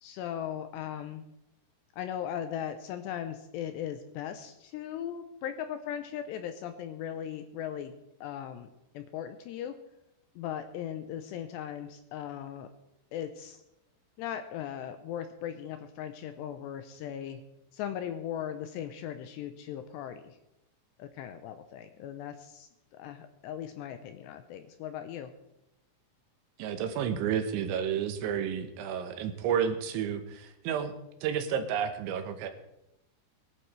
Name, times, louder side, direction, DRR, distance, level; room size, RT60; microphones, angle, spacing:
voice 1, 0.0-1.2 2.0-8.7 8.9-9.7 10.4-12.7 13.1-13.6 14.2-17.4 17.7-20.4 21.0-25.3, left 10 dB, 80° left, 8 dB, 2.6 m, -38 dB
voice 2, 26.6-30.9 31.2-32.5, right 8 dB, 80° right, 7 dB, 3.4 m, -31 dB
22.0 x 11.0 x 3.2 m, 0.89 s
omnidirectional pair, 5.5 m